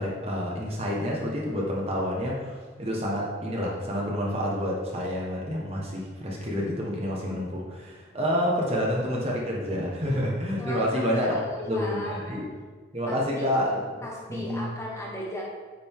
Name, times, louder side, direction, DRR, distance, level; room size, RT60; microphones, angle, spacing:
voice 1, 0.0-11.4 11.7-12.5 12.9-14.0 14.3-14.7, equal, 35° right, -3 dB, 1.3 m, -28 dB
voice 2, 10.6-12.4 13.1-13.5 14.0-15.4, equal, 15° left, -4 dB, 1.3 m, -37 dB
9.0 x 5.2 x 3.7 m, 1.4 s
head